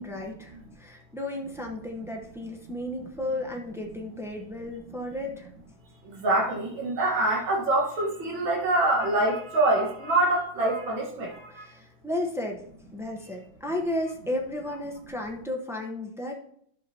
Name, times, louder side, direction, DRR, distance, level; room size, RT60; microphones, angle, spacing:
voice 1, 0.0-5.5 11.5-12.6 12.9-16.4, left 1 dB, 5° right, 0 dB, 0.3 m, -33 dB
voice 2, 6.0-11.7, right 2 dB, 85° right, -1 dB, 2.4 m, -25 dB
11.5 x 6.6 x 2.9 m, 0.67 s
omnidirectional pair, 2.1 m